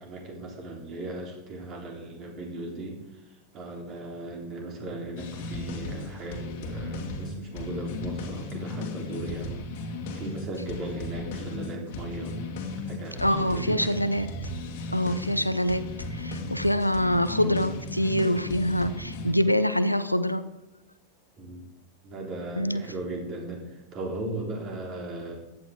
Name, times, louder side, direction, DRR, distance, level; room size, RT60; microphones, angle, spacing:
voice 1, 0.0-3.0 3.3-9.6 10.1-12.3 12.9-13.9 21.4-21.7 22.0-25.3, right 2 dB, 30° right, 1 dB, 3.6 m, -37 dB
sound 1, 5.2-19.3, left 2 dB, 50° left, 2.1 m, -36 dB
voice 2, 13.2-14.3 14.9-20.5 22.6-22.8, equal, 90° left, 13 dB, 0.7 m, -25 dB
15.5 x 11.0 x 3.8 m, 0.93 s
figure-of-eight pair, 90°, 0 cm